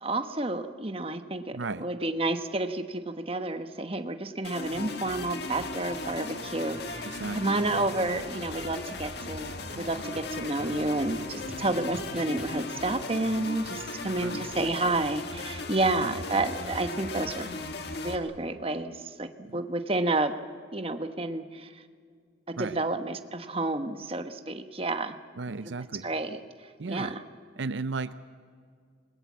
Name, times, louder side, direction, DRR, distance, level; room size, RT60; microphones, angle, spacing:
voice 1, 0.0-1.5 1.8-17.5 18.0-20.3 20.7-21.7 22.5-25.2 26.0-26.4 26.9-27.2, right 2 dB, 30° right, 8 dB, 1.1 m, -30 dB
voice 2, 1.5-1.9 7.0-7.4 14.2-14.5 16.0-16.1 19.4-19.6 22.6-22.8 25.3-26.1 26.8-27.2 27.6-28.1, right 3 dB, 75° right, 13 dB, 0.6 m, -35 dB
sound 1, 4.4-18.2, left 2 dB, 55° left, 1.7 m, -37 dB
sound 2, 9.3-12.9, equal, 5° right, 1.7 m, -49 dB
27.5 x 20.5 x 7.4 m, 2.1 s
head